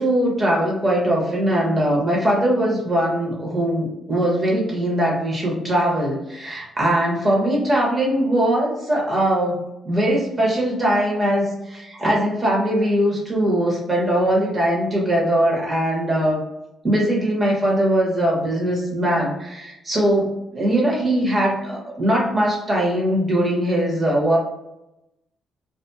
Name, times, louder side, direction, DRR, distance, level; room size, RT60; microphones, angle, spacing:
voice 1, 0.0-16.4 16.8-24.4, right 1 dB, 25° right, -3 dB, 1.2 m, -21 dB
2.4 x 2.4 x 2.7 m, 0.90 s
cardioid pair, 90°, 0 cm